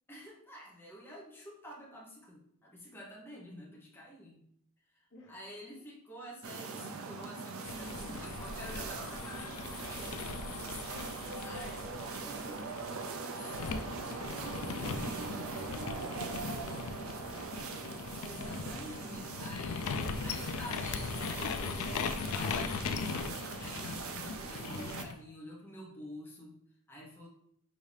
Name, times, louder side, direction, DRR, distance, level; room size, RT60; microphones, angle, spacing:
voice 1, 0.1-4.4 4.9-10.2 11.0-12.9 13.3-13.7 14.6-15.2 18.2-26.6 26.9-27.3, equal, 10° left, -4 dB, 0.8 m, -49 dB
sound 1, 6.4-25.0, right 4 dB, 65° right, 0.5 m, -42 dB
sound 2, 7.6-13.0 13.5-25.1, left 5 dB, 75° left, 0.4 m, -39 dB
voice 2, 11.4-12.0 13.4-14.4 14.9-17.9, left 3 dB, 55° left, -1 dB, 0.9 m, -57 dB
5.2 x 2.7 x 3.2 m, 0.69 s
head